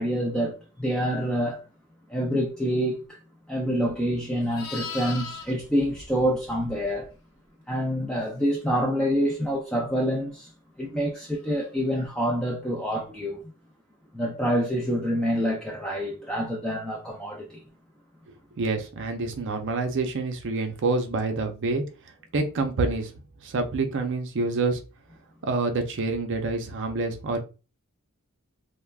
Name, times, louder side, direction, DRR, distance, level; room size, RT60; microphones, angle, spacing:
voice 1, 0.0-1.6 2.1-3.2 3.5-7.1 7.7-10.5 10.8-13.4 14.1-17.6, equal, 5° left, 0.4 m, -27 dB
Livestock farm animals working animals, 3.8-7.1 11.5-11.7, left 4 dB, 85° left, 0.9 m, -40 dB
voice 2, 18.6-21.8 22.3-23.1 23.4-24.8 25.4-27.4, right 3 dB, 55° right, 0.5 m, -27 dB
3.3 x 2.1 x 2.3 m
head